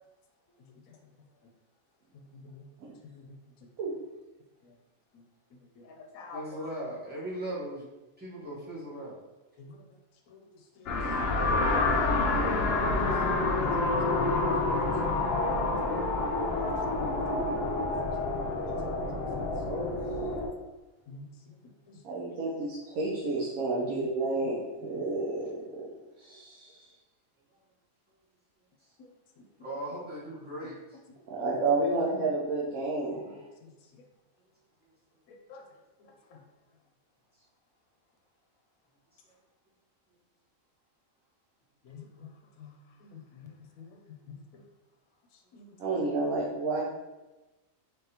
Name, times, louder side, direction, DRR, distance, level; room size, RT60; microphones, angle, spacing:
voice 1, 2.3-2.7 3.0-3.2 5.8-6.6 9.6-9.7 10.3-10.4 10.8-11.0 14.2-14.3 14.5-14.7 15.1-15.6 16.6-18.1 18.4-19.1 21.1-21.3 23.8-23.9 29.0-29.1 33.6-33.7 35.3-35.6 41.9-42.3 42.6-42.7 43.1-43.5 43.8-44.0 45.5-45.6, left 5 dB, 85° left, 2 dB, 1.0 m, -48 dB
voice 2, 6.3-7.8 8.2-9.2 29.6-31.0, right 1 dB, 5° right, -9 dB, 1.3 m, -38 dB
sound 1, 10.9-20.5, left 2 dB, 55° left, 0.7 m, -28 dB
voice 3, 22.0-25.9 26.2-26.7 31.3-33.2 45.8-46.8, right 2 dB, 80° right, -4 dB, 1.2 m, -30 dB
3.8 x 3.5 x 2.9 m, 1.1 s
omnidirectional pair, 1.5 m